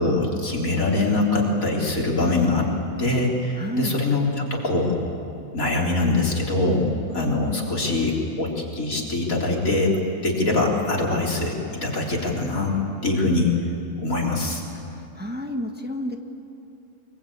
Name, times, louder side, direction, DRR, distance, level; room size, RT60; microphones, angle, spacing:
voice 1, 0.0-2.7 3.0-4.3 4.5-4.9 5.5-10.0 10.2-11.6 11.8-12.7 13.0-13.5 14.0-14.6, left 2 dB, 85° left, -2 dB, 4.3 m, -23 dB
voice 2, 3.5-4.0 14.7-16.2, equal, 5° right, 3 dB, 1.4 m, -31 dB
23.5 x 22.5 x 8.8 m, 2.7 s
omnidirectional pair, 1.4 m